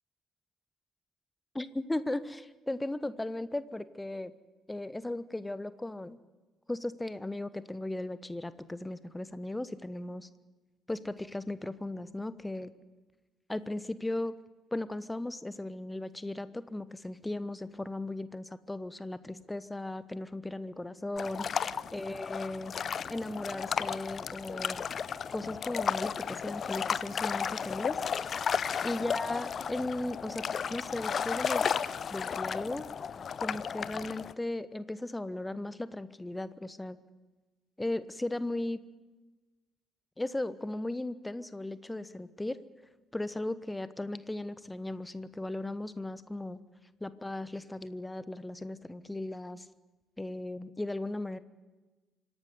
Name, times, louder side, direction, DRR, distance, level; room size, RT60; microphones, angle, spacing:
voice 1, 1.5-4.3 4.7-6.2 6.7-10.3 10.9-12.7 13.5-14.3 14.7-22.7 23.1-24.8 25.3-28.0 28.8-30.4 30.7-31.7 32.1-32.9 33.4-37.0 37.8-38.8 40.2-42.6 43.1-46.6 47.0-49.7 50.2-51.4, left 1 dB, 10° left, 15 dB, 1.0 m, -36 dB
sound 1, 21.2-34.3, left 7 dB, 45° left, 0.6 m, -34 dB
25.5 x 12.0 x 9.5 m, 1.2 s
figure-of-eight pair, 45°, 0 cm